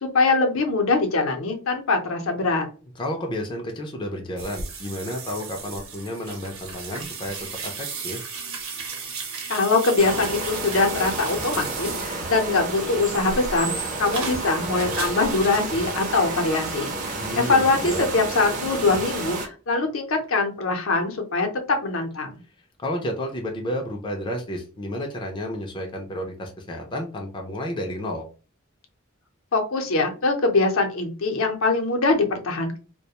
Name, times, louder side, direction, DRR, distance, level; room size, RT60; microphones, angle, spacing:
voice 1, 0.0-2.7 9.5-13.7 14.0-21.5 21.8-22.4 29.5-32.8, left 3 dB, 70° left, 3 dB, 0.6 m, -23 dB
voice 2, 3.0-8.2 17.2-18.1 22.8-28.2, equal, 20° left, 1 dB, 0.4 m, -31 dB
sound 1, 4.4-12.6 13.0-16.0, right 4 dB, 75° right, 0.8 m, -35 dB
sound 2, 10.0-19.5, right 3 dB, 40° right, 0.5 m, -31 dB
2.3 x 2.1 x 2.8 m, 0.36 s
head